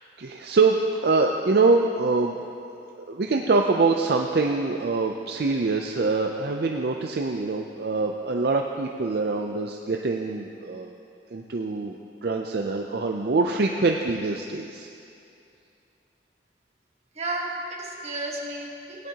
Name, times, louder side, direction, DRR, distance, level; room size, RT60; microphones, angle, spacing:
voice 1, 0.2-2.5 3.0-10.9 11.3-14.9, right 3 dB, 60° right, 2 dB, 0.5 m, -24 dB
voice 2, 17.1-19.1, right 2 dB, 35° right, -1 dB, 1.4 m, -32 dB
17.5 x 10.0 x 2.9 m, 2.6 s
head